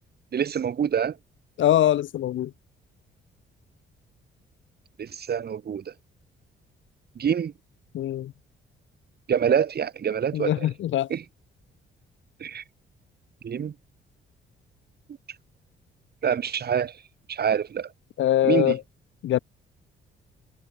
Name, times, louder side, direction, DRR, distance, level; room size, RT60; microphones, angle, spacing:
voice 1, 0.3-1.2 5.0-5.9 7.1-7.5 9.3-10.7 11.1-11.2 12.4-12.6 13.4-13.7 16.2-17.0 17.3-17.9 18.4-18.8, right 8 dB, 55° right, 5.2 m, -26 dB
voice 2, 1.6-2.5 7.9-8.3 10.3-11.1 18.2-18.8 19.2-19.4, left 12 dB, 75° left, 1.8 m, -22 dB
cardioid pair, 90°, 20 cm